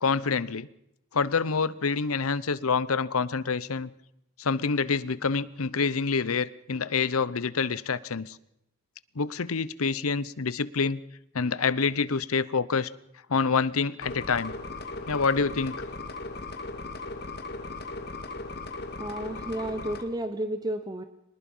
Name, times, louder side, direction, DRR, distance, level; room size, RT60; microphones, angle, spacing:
voice 1, 0.0-0.7 1.1-3.9 4.4-8.4 9.2-11.0 11.3-12.9 13.3-14.5 15.1-15.8, left 5 dB, 85° left, 18 dB, 0.8 m, -27 dB
sound 1, 14.0-20.0, left 3 dB, 50° left, 2.3 m, -37 dB
voice 2, 19.0-21.0, right 1 dB, 20° right, 9 dB, 0.9 m, -32 dB
24.0 x 20.5 x 5.6 m, 0.82 s
head